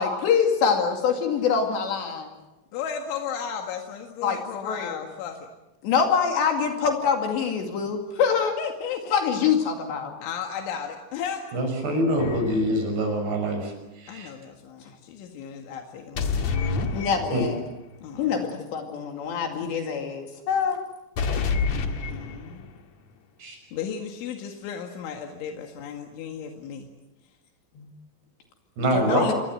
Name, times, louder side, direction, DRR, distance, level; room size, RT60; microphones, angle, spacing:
voice 1, 0.0-2.3 4.2-5.0 5.8-8.6 9.1-10.1 16.9-17.6 18.2-20.8 27.8-27.9 28.9-29.3, left 6 dB, 70° left, 3 dB, 4.4 m, -25 dB
voice 2, 2.7-5.5 8.6-9.1 10.2-11.4 14.1-17.0 18.0-18.6 21.7-22.7 23.7-26.9, left 7 dB, 90° left, 3 dB, 4.2 m, -35 dB
voice 3, 11.5-14.3 17.3-17.4 23.4-23.6 28.8-29.3, right 1 dB, 65° right, 4 dB, 8.1 m, -25 dB
sound 1, 12.2-12.8 16.2-17.7 21.2-22.8, left 4 dB, 50° left, 2.4 m, -28 dB
28.0 x 23.5 x 7.9 m, 1.0 s
omnidirectional pair, 5.3 m